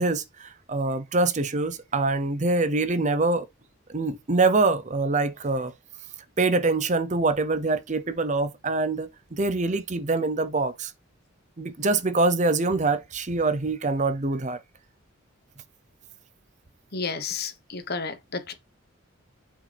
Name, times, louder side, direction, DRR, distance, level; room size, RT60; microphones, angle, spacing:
voice 1, 0.0-3.5 3.9-5.7 6.4-10.9 11.6-14.6, right 3 dB, 35° right, 0.7 m, -24 dB
voice 2, 16.9-18.5, left 4 dB, 50° left, 1.2 m, -32 dB
7.9 x 6.3 x 3.4 m
head